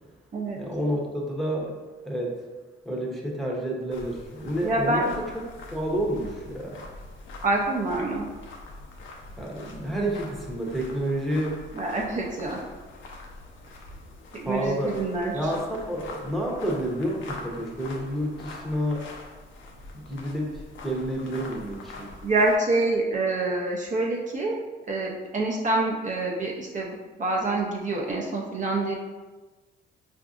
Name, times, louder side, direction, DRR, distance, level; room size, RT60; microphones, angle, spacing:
voice 1, 0.6-2.4 2.9-5.2 5.7-6.8 9.4-11.7 14.4-15.0 15.3-19.1 19.9-22.1, right 1 dB, ahead, -3 dB, 0.8 m, -29 dB
sound 1, 3.9-22.6, left 2 dB, 70° left, 0.6 m, -44 dB
voice 2, 4.6-5.0 7.4-8.3 11.7-12.6 14.3-15.5 22.2-24.6 24.9-28.9, right 2 dB, 40° right, -2 dB, 0.6 m, -26 dB
4.7 x 2.5 x 2.4 m, 1.3 s
cardioid pair, 90°, 20 cm